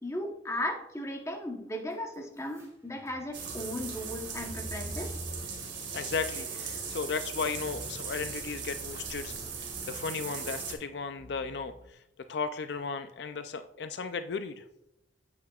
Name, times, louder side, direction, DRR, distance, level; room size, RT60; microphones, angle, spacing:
voice 1, 0.0-5.2, left 1 dB, 15° left, 2 dB, 1.0 m, -36 dB
sound 1, 1.9-6.8, equal, 15° right, 2.0 m, -46 dB
sound 2, 3.3-10.7, right 5 dB, 85° right, 1.8 m, -38 dB
sound 3, 4.7-11.9, equal, 50° right, 1.5 m, -53 dB
voice 2, 5.9-9.3 9.9-12.0 12.3-14.6, left 5 dB, 65° left, 10 dB, 0.4 m, -35 dB
8.6 x 8.0 x 2.4 m, 0.84 s
head